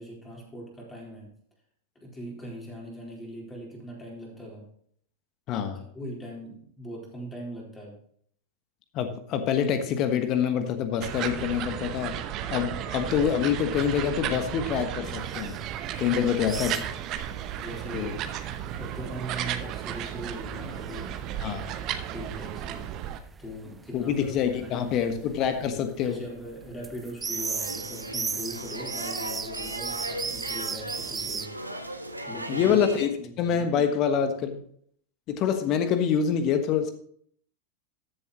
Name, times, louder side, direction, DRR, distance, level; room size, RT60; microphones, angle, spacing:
voice 1, 0.0-1.3 2.0-4.7 5.7-8.0 16.1-16.8 17.6-18.2 18.8-21.2 22.1-23.1 23.4-25.2 26.0-31.6 32.3-32.9 33.2-33.7, equal, 15° left, -2 dB, 3.9 m, -40 dB
voice 2, 5.5-5.8 8.9-12.2 12.5-15.6 16.0-16.7 17.9-18.1 21.4-21.7 23.9-26.2 32.5-33.1 33.4-34.6 35.3-36.9, left 8 dB, 35° left, 9 dB, 1.3 m, -26 dB
sound 1, 11.0-23.2, right 10 dB, 35° right, 0.8 m, -34 dB
sound 2, 15.0-17.5 17.8-31.5, right 5 dB, 15° right, 0.5 m, -38 dB
sound 3, 27.2-33.1, right 1 dB, 85° right, 1.0 m, -37 dB
14.0 x 7.3 x 3.0 m, 0.62 s
figure-of-eight pair, 90°, 0 cm